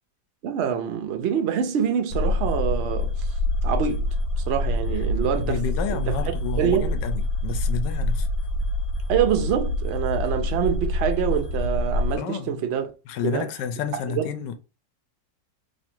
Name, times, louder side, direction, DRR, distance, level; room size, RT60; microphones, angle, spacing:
voice 1, 0.4-3.3 3.6-4.1 4.4-5.6 5.9-6.9 9.1-12.9 13.2-13.5 14.1-14.3, right 8 dB, 70° right, 0.6 m, -25 dB
sound 1, 2.1-12.2, left 1 dB, 60° left, 1.1 m, -26 dB
voice 2, 5.4-8.3 12.1-12.6 13.1-14.6, left 7 dB, 80° left, 1.2 m, -30 dB
3.2 x 2.5 x 4.4 m
omnidirectional pair, 1.9 m